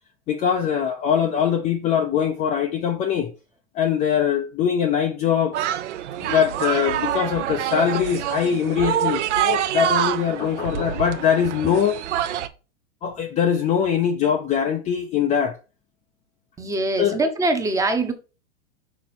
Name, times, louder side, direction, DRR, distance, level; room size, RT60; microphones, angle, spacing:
voice 1, 0.3-3.3 3.7-5.6 6.2-11.9 13.0-15.6 17.0-17.2, left 8 dB, 20° left, 0.5 m, -22 dB
sound 1, 5.5-12.5, right 10 dB, 75° right, 0.9 m, -26 dB
voice 2, 16.6-18.1, right 2 dB, 10° right, 0.8 m, -23 dB
6.3 x 4.3 x 4.1 m
supercardioid pair, 150°, 36 cm